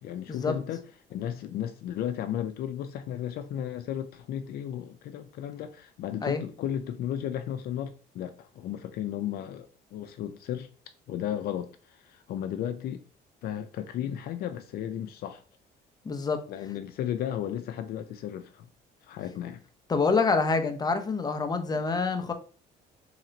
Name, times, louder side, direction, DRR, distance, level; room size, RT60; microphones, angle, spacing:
voice 1, 0.0-0.8 1.1-10.7 11.1-13.0 13.4-15.4 16.5-18.7 19.0-19.6, left 10 dB, 65° left, 0.4 m, -34 dB
voice 2, 16.0-16.4 19.9-22.3, left 4 dB, 25° left, 0.6 m, -26 dB
3.2 x 2.9 x 3.9 m
cardioid pair, 110°, 17 cm